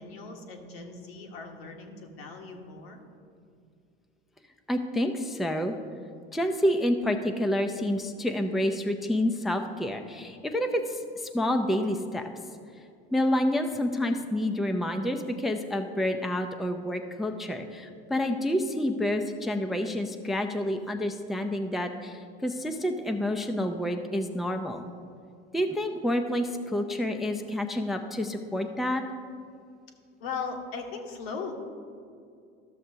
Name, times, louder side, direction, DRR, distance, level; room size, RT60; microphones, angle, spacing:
voice 1, 0.0-3.0 30.2-31.5, left 5 dB, 75° left, 2 dB, 1.3 m, -38 dB
voice 2, 4.7-5.8 6.3-12.3 13.1-24.9 25.5-29.0, left 1 dB, ahead, 5 dB, 0.4 m, -28 dB
13.0 x 6.6 x 2.8 m, 2.3 s
hypercardioid pair, 85°, 31 cm